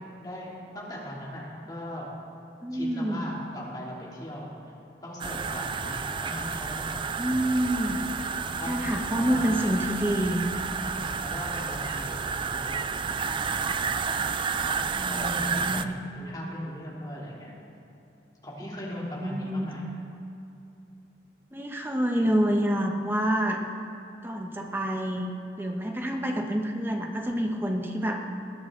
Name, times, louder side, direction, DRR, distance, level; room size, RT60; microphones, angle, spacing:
voice 1, 0.2-2.1 2.7-4.5 5.0-7.3 8.6-9.5 10.8-12.9 15.1-17.5 18.4-19.8, equal, 20° left, -5 dB, 2.8 m, -39 dB
voice 2, 2.6-3.3 7.2-8.0 8.6-10.5 14.9-15.9 18.6-19.7 21.5-23.6 24.2-25.3 25.6-28.2, equal, 10° right, 2 dB, 0.9 m, -28 dB
sound 1, 5.2-15.8, right 5 dB, 25° right, 0.3 m, -31 dB
20.0 x 10.0 x 3.8 m, 2.8 s
head